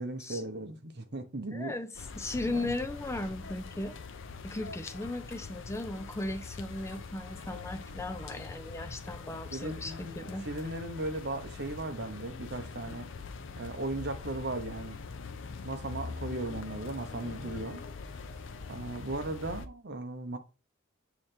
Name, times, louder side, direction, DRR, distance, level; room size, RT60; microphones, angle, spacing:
voice 1, 0.0-1.7 2.5-2.7 9.5-13.1 13.6-15.0 15.6-17.8 18.7-20.4, right 2 dB, 55° right, 1.0 m, -37 dB
voice 2, 1.5-4.0 4.4-10.4, left 2 dB, 15° left, 0.5 m, -37 dB
sound 1, 1.9-19.7, left 4 dB, 65° left, 0.6 m, -43 dB
7.1 x 3.3 x 4.3 m
head